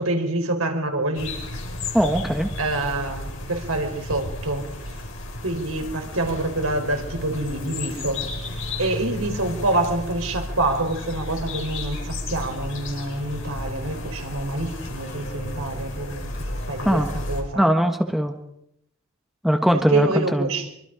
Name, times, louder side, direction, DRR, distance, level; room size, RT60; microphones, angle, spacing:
voice 1, 0.0-1.3 2.6-4.6 5.4-8.2 8.8-17.0 17.3-17.6 19.9-20.7, right 2 dB, 75° right, 5 dB, 4.1 m, -26 dB
sound 1, 1.1-17.4, left 1 dB, 60° left, 5.2 m, -33 dB
voice 2, 1.9-2.5 16.8-17.1 17.5-18.3 19.4-20.5, equal, ahead, 5 dB, 1.3 m, -20 dB
24.5 x 24.5 x 5.0 m, 0.76 s
head